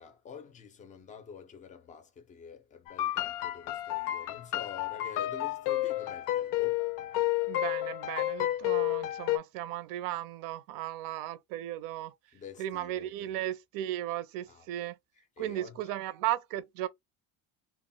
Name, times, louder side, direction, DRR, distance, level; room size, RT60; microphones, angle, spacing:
voice 1, 0.0-6.9 12.3-13.3 14.5-14.7 15.4-15.8, left 6 dB, 20° left, 0.5 m, -47 dB
sound 1, 2.9-9.4, left 15 dB, 75° left, 0.5 m, -31 dB
voice 2, 7.5-12.1 12.6-15.0 15.4-16.9, right 13 dB, 70° right, 0.5 m, -35 dB
2.2 x 2.1 x 3.6 m
cardioid pair, 160°, 35 cm